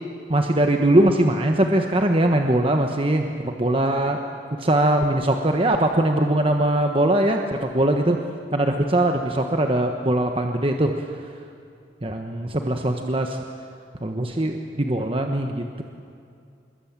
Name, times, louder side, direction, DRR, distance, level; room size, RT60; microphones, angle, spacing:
voice 1, 0.3-4.2 4.6-8.2 8.5-10.9 12.0-13.4 14.0-15.8, right 1 dB, 30° right, 4 dB, 1.3 m, -21 dB
27.0 x 21.5 x 8.9 m, 2.4 s
head